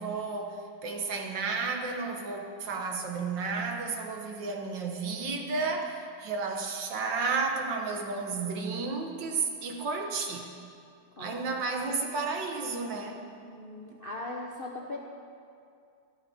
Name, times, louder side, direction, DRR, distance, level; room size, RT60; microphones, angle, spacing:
voice 1, 0.0-10.5 11.2-13.2, right 4 dB, 60° right, 2 dB, 1.8 m, -32 dB
voice 2, 11.2-11.6 13.4-15.0, left 2 dB, 45° left, -2 dB, 0.7 m, -39 dB
14.0 x 12.5 x 4.3 m, 2.3 s
omnidirectional pair, 2.3 m